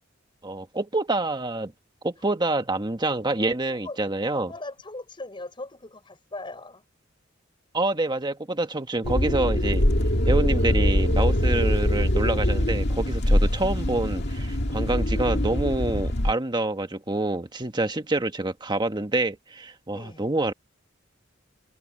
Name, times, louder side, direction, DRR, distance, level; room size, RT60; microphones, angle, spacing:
voice 1, 0.4-1.7 2.0-4.5 7.7-9.9 10.2-20.5, right 2 dB, 25° right, 1.4 m, -27 dB
voice 2, 3.7-4.0 4.3-6.8 19.9-20.3, left 2 dB, 25° left, 5.0 m, -39 dB
sound 1, 9.0-16.3, left 1 dB, 55° left, 2.3 m, -23 dB
head